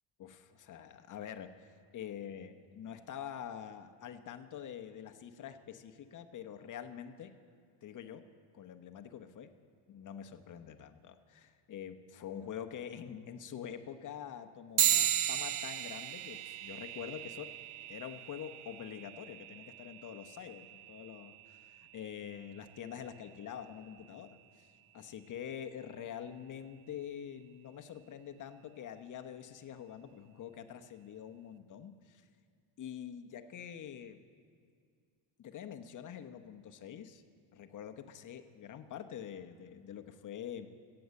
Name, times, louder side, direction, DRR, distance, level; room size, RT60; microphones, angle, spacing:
voice 1, 0.2-1.7 1.9-7.3 7.8-8.2 8.5-9.5 9.9-17.5 17.9-24.7 24.9-32.3 32.8-34.2 35.4-37.2 37.5-40.7, left 9 dB, 40° left, 7 dB, 0.9 m, -46 dB
sound 1, 14.8-24.6, right 11 dB, 70° right, 0.9 m, -37 dB
15.0 x 7.9 x 8.2 m, 2.2 s
cardioid pair, 115°, 50 cm